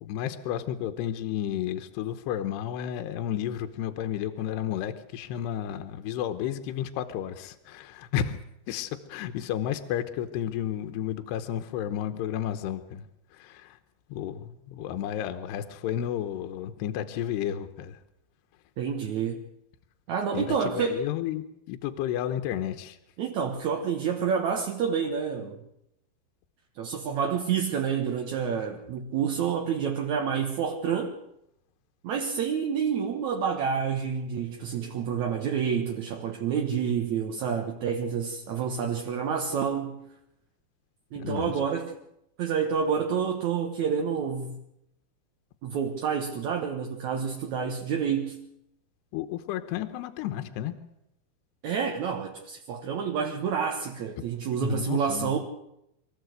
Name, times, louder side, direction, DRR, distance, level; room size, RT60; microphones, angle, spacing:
voice 1, 0.0-8.4 8.7-13.1 13.3-13.8 14.1-18.0 20.3-23.0 41.2-41.6 49.1-50.7 54.6-55.4, left 10 dB, 80° left, 8 dB, 3.0 m, -32 dB
voice 2, 18.8-19.4 20.1-21.0 23.2-25.6 26.8-31.2 32.0-40.0 41.1-41.9 42.4-44.6 45.6-48.4 51.6-55.4, right 7 dB, 60° right, 2 dB, 2.1 m, -28 dB
24.0 x 15.0 x 8.1 m, 0.82 s
omnidirectional pair, 4.8 m